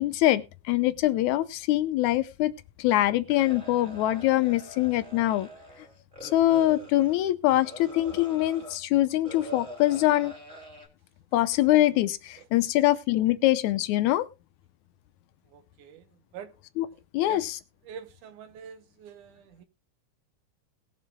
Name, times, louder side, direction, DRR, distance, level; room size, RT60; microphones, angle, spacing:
voice 1, 0.0-2.5 2.8-5.5 6.2-10.3 11.3-14.3 16.8-16.9 17.1-17.6, left 15 dB, 75° left, 2.0 m, -24 dB
sound 1, 3.3-8.8 9.2-10.9, equal, 15° right, 2.1 m, -45 dB
voice 2, 15.5-16.0 16.3-16.5 17.3-17.4 17.9-19.7, right 8 dB, 80° right, 2.3 m, -45 dB
20.5 x 7.3 x 2.2 m
omnidirectional pair, 3.6 m